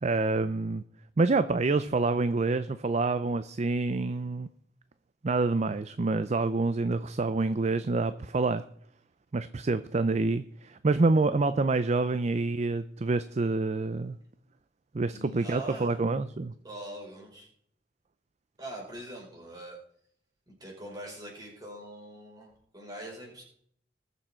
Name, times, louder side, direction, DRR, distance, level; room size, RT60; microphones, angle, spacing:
voice 1, 0.0-0.8 1.2-4.5 5.2-8.6 9.3-14.2 14.9-16.5, right 3 dB, 40° right, 12 dB, 0.5 m, -27 dB
voice 2, 15.1-16.0 16.6-17.5 18.6-19.8 20.5-23.4, right 1 dB, 20° right, -3 dB, 5.3 m, -43 dB
21.0 x 7.1 x 4.4 m, 0.67 s
head